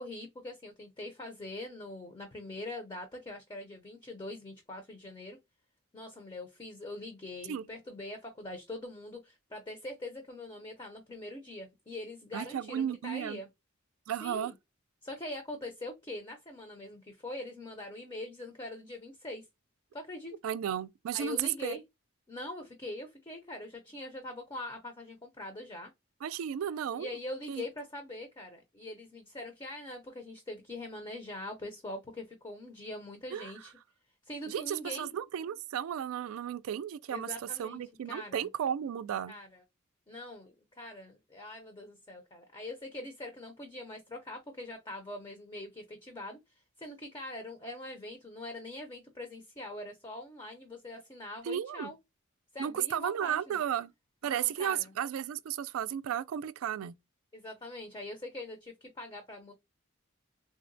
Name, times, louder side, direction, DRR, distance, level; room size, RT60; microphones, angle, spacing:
voice 1, 0.0-5.4 5.9-13.5 14.2-14.5 15.0-19.5 19.9-20.3 21.1-21.8 22.3-25.9 27.0-33.7 34.2-35.1 37.1-37.8 38.1-38.5 39.3-39.6 40.1-46.4 46.8-52.0 52.5-53.6 54.3-54.9 57.3-59.5, left 2 dB, 20° left, 0.5 m, -43 dB
voice 2, 12.3-13.4 14.1-14.5 20.4-21.8 26.2-27.1 27.5-27.6 33.3-33.5 34.5-37.3 37.6-39.3 51.4-51.9 52.6-53.9 54.2-57.0, right 9 dB, 80° right, 0.3 m, -34 dB
3.8 x 2.1 x 2.5 m
head